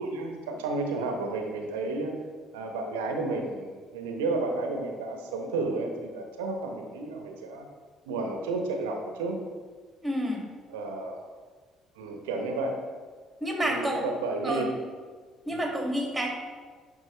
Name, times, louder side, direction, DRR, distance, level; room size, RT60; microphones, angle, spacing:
voice 1, 0.0-2.1 2.5-7.7 8.1-9.4 10.7-11.2 12.0-12.8 13.6-14.7 15.5-15.6, right 3 dB, 75° right, 3 dB, 0.9 m, -32 dB
voice 2, 10.0-10.5 13.4-14.0 14.4-14.7 15.5-16.3, equal, 10° right, 0 dB, 2.1 m, -29 dB
11.0 x 5.1 x 3.2 m, 1.5 s
figure-of-eight pair, 50°, 0 cm